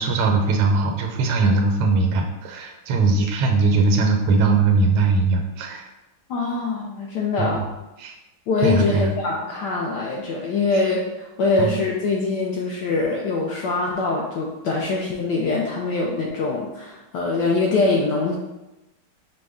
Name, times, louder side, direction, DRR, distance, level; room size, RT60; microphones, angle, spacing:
voice 1, 0.0-5.9 7.4-7.5 8.0-8.1 8.6-9.1 11.6-11.8, right 3 dB, 85° right, 3 dB, 1.5 m, -20 dB
voice 2, 6.3-7.6 8.5-18.3, left 3 dB, 80° left, -2 dB, 0.9 m, -23 dB
5.2 x 2.1 x 3.5 m, 1.0 s
omnidirectional pair, 2.3 m